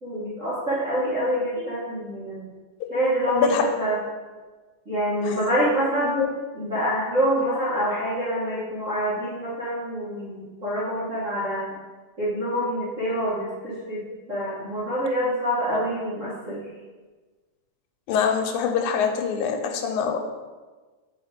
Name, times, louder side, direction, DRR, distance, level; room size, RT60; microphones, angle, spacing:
voice 1, 0.0-2.5 2.9-4.0 4.8-6.2 6.5-11.6 12.2-16.7, equal, 35° right, -11 dB, 1.4 m, -26 dB
voice 2, 3.3-3.6 5.2-5.4 6.0-6.3 15.7-15.8 18.1-20.2, left 7 dB, 90° left, 4 dB, 2.2 m, -24 dB
5.8 x 4.6 x 5.0 m, 1.3 s
omnidirectional pair, 3.4 m